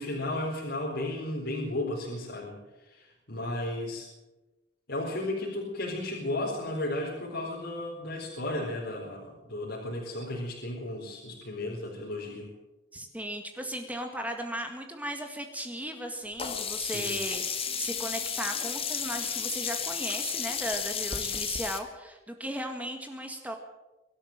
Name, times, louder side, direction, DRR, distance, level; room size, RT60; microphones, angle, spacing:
voice 1, 0.0-4.1 4.9-12.5 16.8-17.2, left 1 dB, 60° left, -3 dB, 4.2 m, -34 dB
voice 2, 12.9-23.6, right 1 dB, 10° right, 4 dB, 1.8 m, -36 dB
Sink (filling or washing), 16.4-21.8, left 7 dB, 30° left, 2.0 m, -33 dB
23.5 x 13.0 x 8.9 m, 1.1 s
head